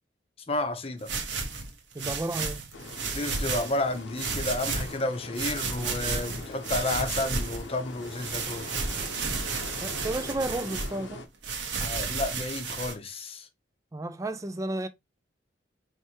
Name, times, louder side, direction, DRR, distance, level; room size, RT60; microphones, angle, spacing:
voice 1, 0.5-1.1 3.1-8.7 11.8-13.5, left 2 dB, 30° left, 0.7 m, -31 dB
sound 1, 1.0-3.8 4.2-5.0 5.4-7.7 8.0-10.9 11.4-12.9, right 4 dB, 70° right, 1.0 m, -32 dB
voice 2, 1.9-2.7 9.8-11.2 13.9-14.9, right 2 dB, 15° right, 0.4 m, -32 dB
sound 2, 2.7-11.3, left 2 dB, 90° left, 0.8 m, -42 dB
4.6 x 3.3 x 2.8 m
head